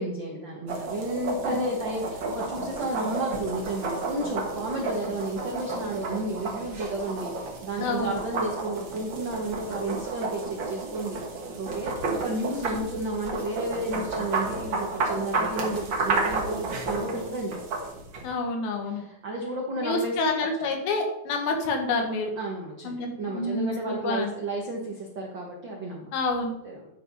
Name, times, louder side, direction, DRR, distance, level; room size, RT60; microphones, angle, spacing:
voice 1, 0.0-11.2 11.6-17.6 18.9-20.1 22.4-26.1 26.6-26.9, right 1 dB, 85° right, -1 dB, 1.0 m, -32 dB
sound 1, 0.7-18.2, right 3 dB, 55° right, 1.3 m, -32 dB
voice 2, 7.8-8.2 18.2-19.0 19.8-22.3 22.8-24.3 26.1-26.6, left 3 dB, 80° left, 3 dB, 3.3 m, -28 dB
10.5 x 4.9 x 5.3 m, 0.86 s
omnidirectional pair, 4.3 m